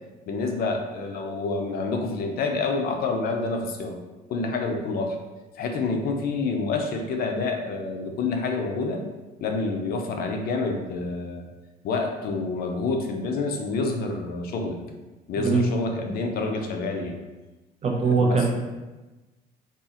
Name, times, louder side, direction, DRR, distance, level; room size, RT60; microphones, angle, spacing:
voice 1, 0.3-4.0 4.3-5.2 5.6-9.0 9.4-11.5 11.8-14.8 15.3-17.2 18.0-18.5, left 3 dB, 65° left, 3 dB, 0.5 m, -28 dB
voice 2, 17.8-18.5, right 4 dB, 40° right, 0 dB, 0.7 m, -21 dB
2.7 x 2.4 x 3.7 m, 1.1 s
cardioid pair, 110°, 17 cm